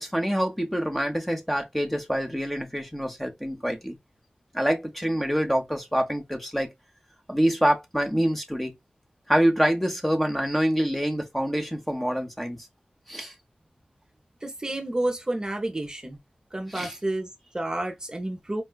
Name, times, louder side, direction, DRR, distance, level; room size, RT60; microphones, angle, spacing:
voice 1, 0.0-4.0 4.5-6.7 7.3-8.7 9.3-12.6 13.1-13.3 16.7-16.9, equal, 5° left, 0.8 m, -26 dB
voice 2, 14.4-16.2 16.5-18.6, right 1 dB, 25° right, 0.6 m, -30 dB
4.5 x 2.2 x 2.2 m
wide cardioid pair, 90°, 3 cm